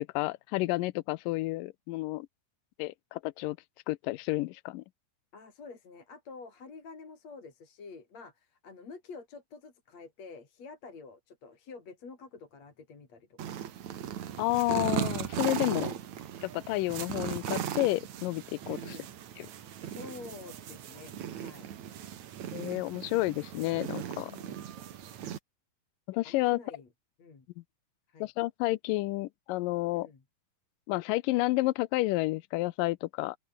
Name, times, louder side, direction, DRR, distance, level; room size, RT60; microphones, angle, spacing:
voice 1, 0.0-2.3 2.8-3.6 3.9-4.8 14.4-15.9 16.4-19.0 19.4-19.5 22.5-24.3 26.1-26.6 28.2-30.1 30.9-33.4, left 19 dB, 80° left, 2.2 m, -30 dB
voice 2, 5.3-13.7 18.7-19.1 19.8-21.7 24.3-24.7 26.2-26.9 27.2-27.5 28.1-28.3 30.0-30.2, left 4 dB, 50° left, 5.4 m, -48 dB
sound 1, 13.4-25.4, right 10 dB, 60° right, 2.7 m, -38 dB
open air
omnidirectional pair, 4.0 m